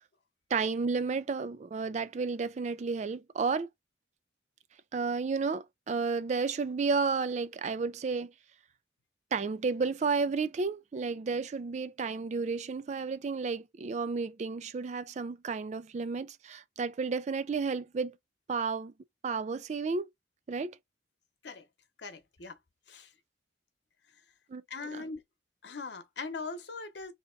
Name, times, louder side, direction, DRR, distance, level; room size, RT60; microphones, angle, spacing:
voice 1, 0.5-3.7 4.9-8.3 9.3-18.1 18.5-18.9 19.2-20.1 20.5-20.8 24.5-24.6, right 4 dB, 35° right, 0.3 m, -32 dB
voice 2, 22.0-22.6 22.9-23.1 24.7-25.2 25.6-27.1, left 4 dB, 65° left, 0.9 m, -40 dB
3.4 x 2.8 x 4.5 m
head